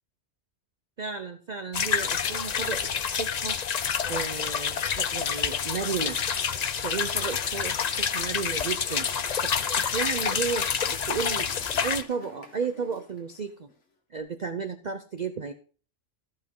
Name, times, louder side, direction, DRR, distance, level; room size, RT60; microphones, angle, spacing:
voice 1, 1.0-3.6 4.1-6.2 6.7-9.1 9.4-11.5 11.8-13.7 14.1-15.5, right 5 dB, 45° right, 8 dB, 0.7 m, -33 dB
sound 1, 1.7-12.0, left 7 dB, 45° left, 0.6 m, -28 dB
Applause / Crowd, 4.5-13.8 14.1-14.2, left 3 dB, 70° left, 2.0 m, -48 dB
14.5 x 5.4 x 5.4 m, 0.40 s
omnidirectional pair, 1.3 m